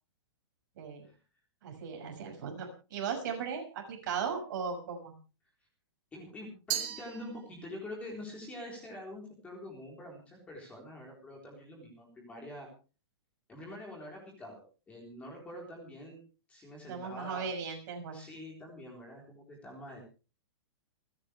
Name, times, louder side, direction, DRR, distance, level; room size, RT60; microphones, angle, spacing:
voice 1, 0.8-1.1 1.6-5.1 16.9-18.2, right 6 dB, 45° right, 3 dB, 6.3 m, -37 dB
voice 2, 6.1-12.7 13.5-16.2 16.5-17.5 18.1-20.0, left 1 dB, 10° left, -1 dB, 3.9 m, -46 dB
Glass, 6.7-7.9, right 11 dB, 25° right, 1.8 m, -37 dB
30.0 x 10.0 x 3.4 m, 0.35 s
hypercardioid pair, 175°, 15 cm